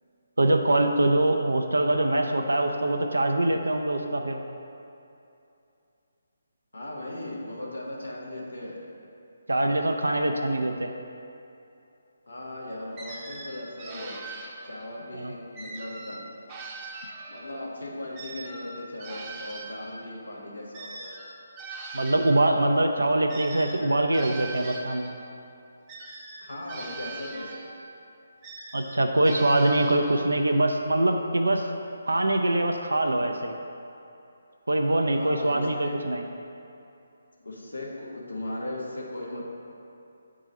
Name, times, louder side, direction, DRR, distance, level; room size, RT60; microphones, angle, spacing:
voice 1, 0.4-4.4 9.5-10.9 15.1-15.3 21.9-25.2 28.7-31.7 32.1-33.5 34.7-36.2, right 1 dB, 85° right, 4 dB, 0.4 m, -23 dB
voice 2, 6.7-8.8 12.3-14.3 14.6-16.2 17.3-21.2 26.4-27.7 35.1-35.9 37.4-39.5, left 1 dB, 85° left, -3 dB, 1.3 m, -37 dB
sound 1, 13.0-15.0 15.6-17.6 18.1-22.5 23.3-25.3 25.9-27.9 28.4-30.4, right 3 dB, 20° right, 0.7 m, -41 dB
7.9 x 3.7 x 4.1 m, 2.7 s
figure-of-eight pair, 150°, 0 cm